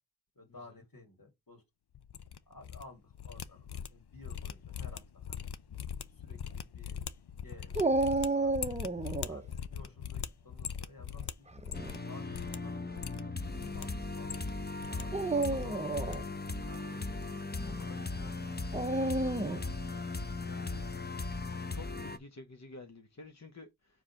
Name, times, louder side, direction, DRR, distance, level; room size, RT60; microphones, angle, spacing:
voice 1, 0.3-1.6 2.5-5.4 6.1-7.1 7.4-8.7 9.3-11.7 12.1-14.6 14.9-16.1 16.6-19.4, left 2 dB, 60° left, 2.5 m, -55 dB
sound 1, 2.0-2.8 3.1-12.0 12.3-12.6 12.9-13.9 14.2-15.0 15.3-16.2 16.4-16.8 17.0-17.2, left 8 dB, 85° left, 0.6 m, -41 dB
Dog, 7.8-9.4 11.5-12.0 12.8-12.9 15.0-16.3 18.7-19.7, right 2 dB, 20° right, 0.7 m, -31 dB
sound 2, 11.7-22.2, left 3 dB, 25° left, 0.8 m, -38 dB
voice 2, 20.4-20.8 21.7-24.0, left 2 dB, 45° left, 1.0 m, -50 dB
4.8 x 3.8 x 5.7 m
wide cardioid pair, 45°, 38 cm